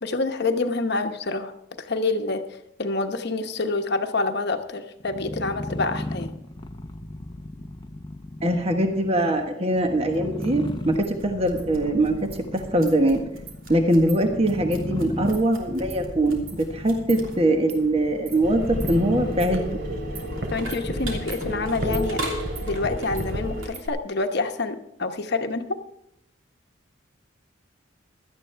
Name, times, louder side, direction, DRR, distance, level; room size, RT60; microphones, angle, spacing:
voice 1, 0.0-6.3 20.5-22.2 22.6-25.8, left 3 dB, 55° left, 6 dB, 1.1 m, -27 dB
sound 1, 5.0-22.3, left 1 dB, 20° left, 0.7 m, -36 dB
voice 2, 8.4-12.1 12.5-13.2 13.7-19.6, right 1 dB, 30° right, 4 dB, 1.4 m, -22 dB
sound 2, 10.1-23.9, right 2 dB, 80° right, 3.1 m, -40 dB
sound 3, 18.4-23.6, equal, 55° right, 3.1 m, -30 dB
16.5 x 12.5 x 3.4 m, 0.80 s
head